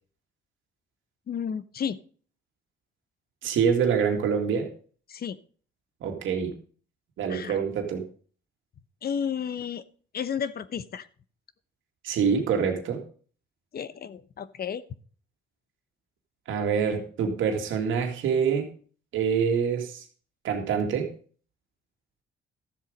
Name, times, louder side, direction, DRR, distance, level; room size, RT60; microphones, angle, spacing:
voice 1, 1.3-2.0 5.1-5.4 7.3-7.6 9.0-9.8 10.1-11.1 13.7-14.8, left 7 dB, 50° left, 15 dB, 0.9 m, -32 dB
voice 2, 3.4-4.7 6.0-6.5 7.2-8.0 12.0-13.0 16.5-18.7 19.1-20.0 20.4-21.1, right 6 dB, 80° right, 3 dB, 2.2 m, -25 dB
13.0 x 7.4 x 5.3 m, 0.43 s
cardioid pair, 90°, 20 cm